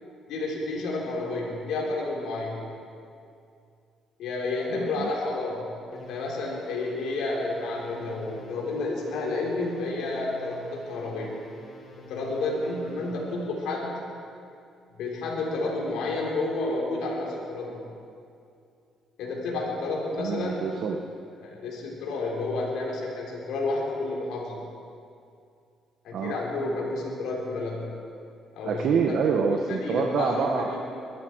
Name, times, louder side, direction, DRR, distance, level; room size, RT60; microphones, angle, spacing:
voice 1, 0.3-2.6 4.2-11.4 12.1-14.0 14.9-17.8 19.2-20.7 21.4-24.6 26.0-27.9 28.5-28.9 29.6-30.8, left 2 dB, 80° left, -3 dB, 3.8 m, -30 dB
voice 2, 4.7-5.1 20.2-21.0 26.1-26.3 28.6-30.8, right 5 dB, 65° right, 2 dB, 1.1 m, -26 dB
sound 1, 5.9-13.5, equal, 45° left, 2.7 m, -49 dB
22.5 x 12.5 x 4.6 m, 2.4 s
cardioid pair, 95°, 0 cm